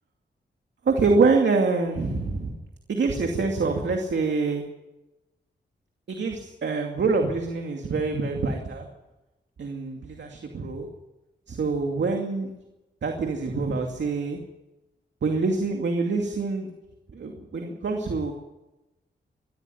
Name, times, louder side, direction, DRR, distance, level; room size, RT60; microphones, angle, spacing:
voice 1, 0.8-2.6 2.9-4.6 6.1-8.9 9.6-10.9 11.5-12.5 13.0-14.4 15.2-16.7 17.1-18.3, right 4 dB, 70° right, 2 dB, 2.5 m, -25 dB
22.0 x 13.5 x 9.2 m, 1.0 s
cardioid pair, 65°, 19 cm